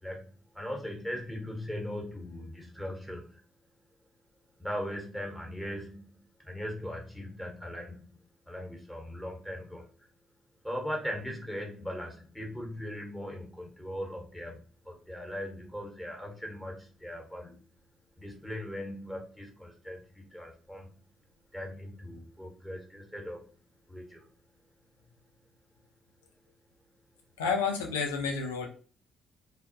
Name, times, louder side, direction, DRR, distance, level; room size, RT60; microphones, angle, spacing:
voice 1, 0.0-3.4 4.6-8.2 8.5-9.9 10.6-17.6 18.2-20.9 21.5-23.5 23.9-24.3, equal, 5° right, 1 dB, 1.0 m, -39 dB
voice 2, 27.4-28.7, left 5 dB, 90° left, 1 dB, 0.4 m, -30 dB
2.2 x 2.0 x 2.7 m, 0.40 s
hypercardioid pair, 50°, 0 cm